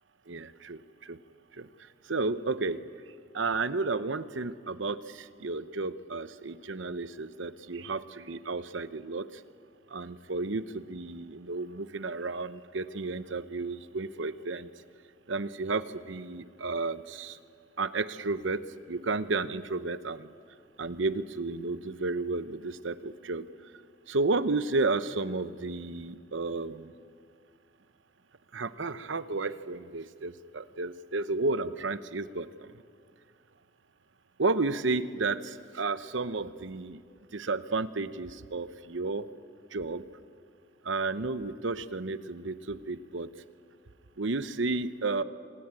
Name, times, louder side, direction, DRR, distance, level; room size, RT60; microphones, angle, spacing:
voice 1, 0.3-1.2 1.6-1.7 2.1-2.8 3.3-9.3 9.9-14.7 15.3-17.4 17.8-18.6 18.9-20.3 20.8-23.5 24.1-26.9 28.5-32.7 34.4-37.0 37.3-39.3 39.7-40.0 40.8-43.3 44.2-45.2, right 3 dB, 70° right, 13 dB, 0.9 m, -32 dB
25.5 x 20.5 x 8.9 m, 2.2 s
head